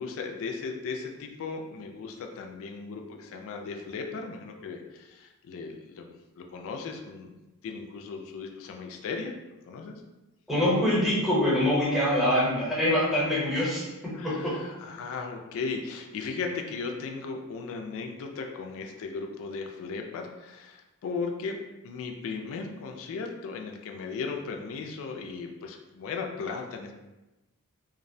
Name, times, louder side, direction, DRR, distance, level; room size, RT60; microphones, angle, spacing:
voice 1, 0.0-7.3 7.6-9.3 9.7-9.9 12.3-12.7 14.1-21.6 21.8-26.9, left 4 dB, 65° left, 4 dB, 0.3 m, -36 dB
voice 2, 10.5-14.6, left 1 dB, ahead, -8 dB, 0.7 m, -25 dB
2.5 x 2.0 x 2.6 m, 1.0 s
head